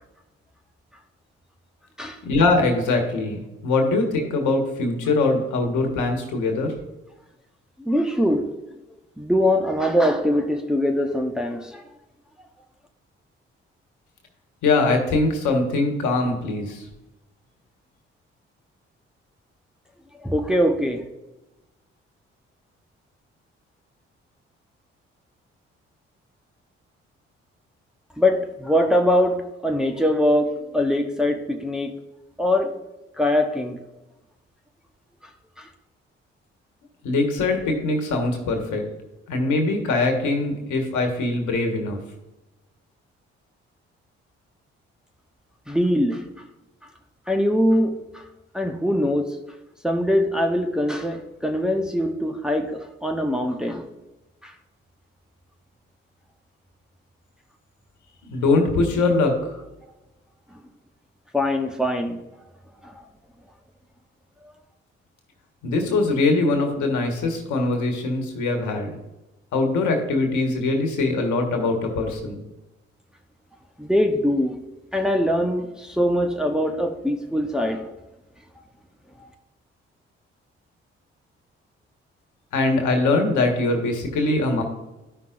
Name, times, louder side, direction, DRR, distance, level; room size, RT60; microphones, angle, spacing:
voice 1, 2.2-6.7 14.6-16.8 37.0-38.8 39.3-42.0 58.3-59.5 65.6-69.0 69.5-72.4 82.5-84.6, left 3 dB, 70° left, 4 dB, 1.5 m, -22 dB
voice 2, 7.8-8.5 9.2-11.8 20.2-21.1 28.2-32.0 32.4-32.8 33.2-33.8 35.6-35.7 45.7-46.3 47.3-48.2 48.5-49.4 49.8-53.9 54.4-54.5 60.5-60.6 61.3-62.3 62.8-63.0 73.8-74.6 74.9-77.9 79.2-79.3, left 1 dB, ahead, 3 dB, 1.0 m, -22 dB
12.5 x 5.7 x 2.5 m, 1.0 s
hypercardioid pair, 40°, 31 cm